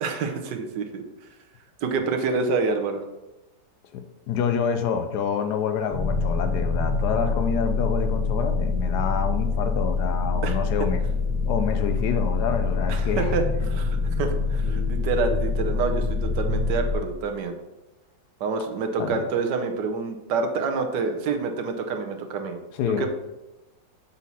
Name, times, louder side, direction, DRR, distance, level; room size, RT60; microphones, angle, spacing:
voice 1, 0.0-1.0 1.8-3.0 10.4-10.6 12.9-17.5 18.4-22.6 22.9-23.1, right 4 dB, 75° right, 5 dB, 1.4 m, -27 dB
voice 2, 3.9-11.0 11.5-13.4 19.0-19.3 22.7-23.1, left 7 dB, 75° left, 8 dB, 1.1 m, -27 dB
sound 1, 5.9-16.9, left 4 dB, 20° left, 0.5 m, -25 dB
7.0 x 4.3 x 4.1 m, 1.0 s
omnidirectional pair, 1.9 m